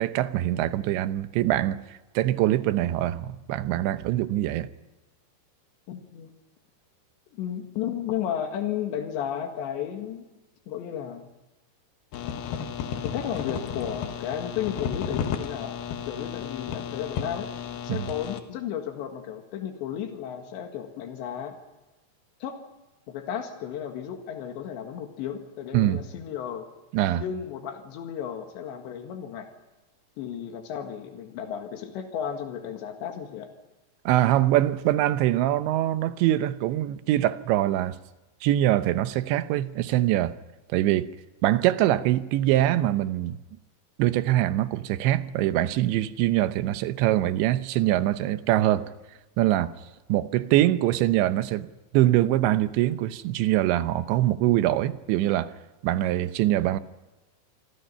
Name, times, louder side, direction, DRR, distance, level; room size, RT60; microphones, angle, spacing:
voice 1, 0.0-4.7 17.9-18.1 25.7-26.0 26.9-27.2 34.1-38.0 38.4-40.3 40.7-41.1 41.4-43.4 44.0-48.9 49.4-49.7 50.1-51.7 51.9-55.5 55.8-56.8, right 14 dB, 90° right, 3.2 m, -23 dB
voice 2, 5.9-6.3 7.3-10.3 10.7-11.3 13.0-15.8 16.1-17.5 17.8-21.5 22.4-22.6 23.1-26.7 27.1-29.5 30.2-33.5, left 9 dB, 90° left, 4.1 m, -33 dB
sound 1, 12.1-18.4, left 8 dB, 70° left, 3.1 m, -33 dB
26.5 x 26.5 x 5.7 m
omnidirectional pair, 5.0 m